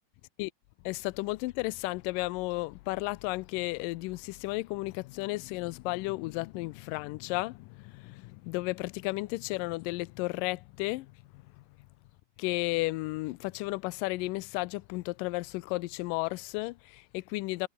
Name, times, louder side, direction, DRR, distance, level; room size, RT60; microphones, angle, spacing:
voice 1, 0.9-11.6 12.4-17.7, left 22 dB, 80° left, 2.2 m, -33 dB
omnidirectional pair, 4.0 m